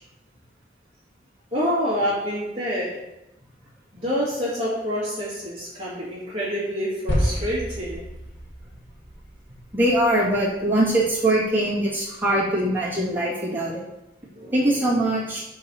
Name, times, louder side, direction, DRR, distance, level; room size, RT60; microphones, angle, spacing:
voice 1, 1.5-3.0 3.9-8.0 14.3-14.7, equal, 30° right, -10 dB, 2.0 m, -27 dB
sound 1, 7.1-11.5, equal, 65° left, 2.2 m, -30 dB
voice 2, 9.7-13.8 14.5-15.4, right 1 dB, 10° right, -8 dB, 2.1 m, -22 dB
5.1 x 4.6 x 6.0 m, 0.91 s
head